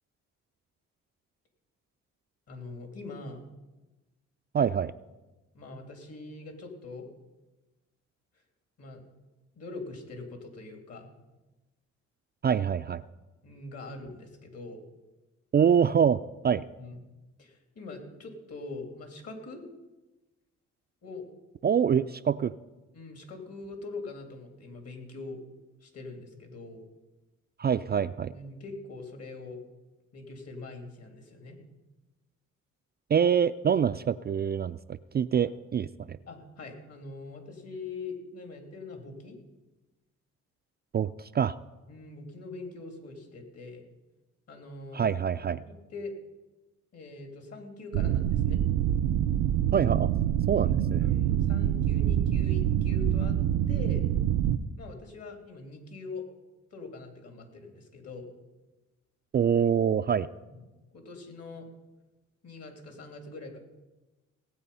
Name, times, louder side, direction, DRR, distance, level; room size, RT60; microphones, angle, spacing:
voice 1, 2.5-3.4 5.5-7.1 8.8-9.0 9.5-11.1 13.4-14.8 16.8-17.0 17.4-19.6 21.0-21.2 22.9-25.4 25.8-26.8 28.3-29.6 30.1-31.6 36.3-39.4 41.9-43.9 44.5-45.1 45.4-46.1 46.9-48.6 51.0-53.4 53.7-54.0 54.8-56.3 56.7-58.3 60.5-60.6 60.9-61.7 62.4-63.6, left 3 dB, 55° left, 4 dB, 2.9 m, -43 dB
voice 2, 4.5-4.9 12.4-13.0 15.5-16.6 21.6-22.5 27.6-28.3 33.1-36.2 40.9-41.5 44.9-45.6 49.7-50.1 50.5-51.0 59.3-60.3, right 8 dB, 35° right, 11 dB, 0.4 m, -25 dB
sound 1, 47.9-54.6, right 11 dB, 90° right, 0.7 m, -26 dB
18.0 x 8.4 x 5.5 m, 1.1 s
cardioid pair, 90°, 30 cm